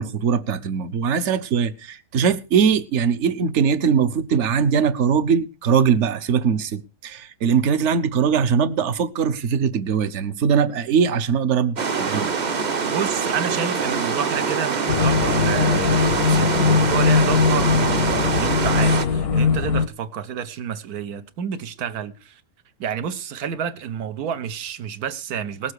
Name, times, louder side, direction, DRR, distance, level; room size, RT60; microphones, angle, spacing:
voice 1, 0.0-12.3, right 7 dB, 55° right, 1.1 m, -21 dB
sound 1, 11.8-19.0, right 5 dB, 40° right, 0.8 m, -24 dB
voice 2, 12.8-22.4 22.8-25.7, right 8 dB, 80° right, 1.4 m, -29 dB
sound 2, 14.9-19.9, left 5 dB, 90° left, 1.3 m, -20 dB
19.0 x 7.4 x 4.7 m
omnidirectional pair, 1.6 m